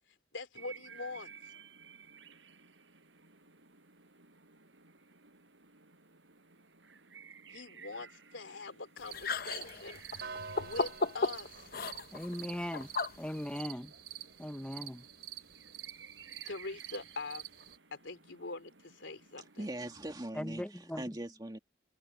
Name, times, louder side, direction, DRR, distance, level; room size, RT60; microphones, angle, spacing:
voice 1, 0.3-1.5 7.5-11.8 16.4-17.4 17.9-19.6, left 3 dB, 90° left, 3.2 m, -44 dB
sound 1, 0.5-20.1, right 6 dB, 85° right, 6.3 m, -57 dB
sound 2, 9.0-13.6, left 4 dB, 50° left, 0.8 m, -36 dB
sound 3, 9.1-17.8, right 9 dB, 60° right, 6.0 m, -48 dB
voice 2, 12.1-12.9 13.2-13.9 14.4-15.0 20.3-21.0, equal, 5° left, 0.6 m, -39 dB
voice 3, 19.6-21.6, right 1 dB, 20° right, 2.0 m, -41 dB
head